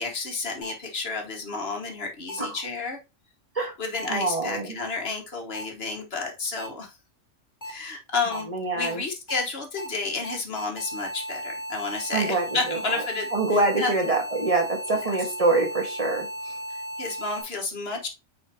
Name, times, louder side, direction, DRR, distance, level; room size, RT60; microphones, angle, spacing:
voice 1, 0.0-3.0 3.8-6.9 7.6-14.1 14.9-15.3 16.7-18.1, left 4 dB, 55° left, 3 dB, 1.6 m, -31 dB
sound 1, 0.6-0.7 2.3-2.4 4.0-4.1 5.5-5.6 6.6-6.7 7.6-7.7 8.3-8.4 8.8-8.9 9.3-9.4 9.8-9.9 10.2-17.4, equal, 15° left, 2.3 m, -35 dB
voice 2, 4.1-4.8 8.3-9.0 12.1-13.0 13.3-16.5, right 2 dB, 30° right, 2 dB, 1.4 m, -25 dB
8.5 x 3.9 x 2.8 m, 0.27 s
omnidirectional pair, 1.3 m